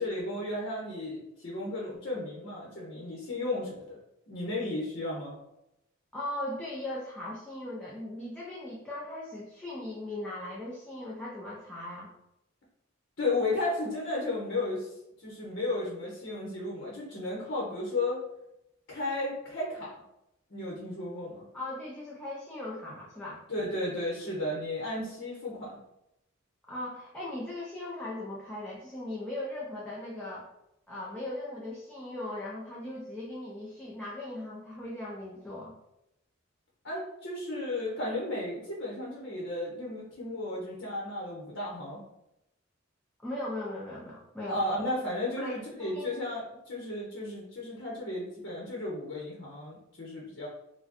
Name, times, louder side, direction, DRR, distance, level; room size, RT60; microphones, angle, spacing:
voice 1, 0.0-4.0 4.3-5.3 13.2-14.9 15.2-18.2 18.9-20.0 20.5-21.4 23.5-25.8 36.8-42.0 44.5-50.5, left 2 dB, 55° left, -5 dB, 0.9 m, -34 dB
voice 2, 6.1-12.1 21.5-23.4 26.7-30.5 30.9-35.7 43.2-44.6 45.4-46.1, left 1 dB, 5° left, -7 dB, 0.5 m, -38 dB
4.2 x 2.2 x 2.9 m, 0.84 s
head